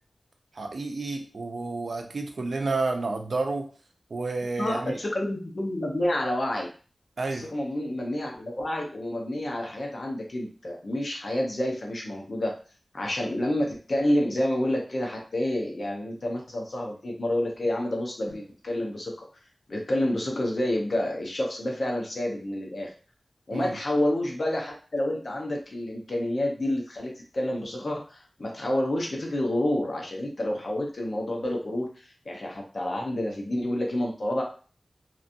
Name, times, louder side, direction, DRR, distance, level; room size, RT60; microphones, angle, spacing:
voice 1, 0.6-3.7 4.1-4.9 7.2-7.5 23.5-23.7, right 3 dB, 75° right, 4 dB, 0.5 m, -30 dB
voice 2, 4.6-6.7 7.3-12.6 12.9-19.3 19.7-22.9 23.5-34.4, left 1 dB, 60° left, 0 dB, 0.8 m, -29 dB
3.0 x 2.6 x 2.6 m, 0.38 s
wide cardioid pair, 65°, 0 cm